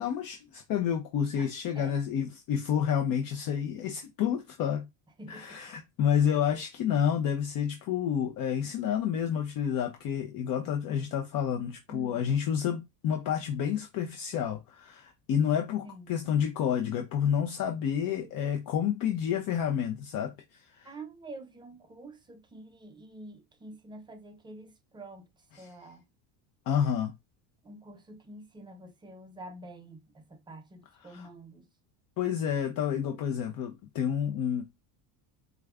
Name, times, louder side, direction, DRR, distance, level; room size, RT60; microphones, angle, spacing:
voice 1, 0.0-4.9 5.3-20.9 26.7-27.1 31.1-31.3 32.2-34.6, left 8 dB, 45° left, 0.6 m, -29 dB
voice 2, 1.8-2.1 5.2-5.6 6.3-6.5 11.9-12.3 15.8-16.2 20.8-26.0 27.6-31.7, right 2 dB, 10° right, 0.4 m, -47 dB
4.7 x 2.3 x 2.3 m
supercardioid pair, 115°, 49 cm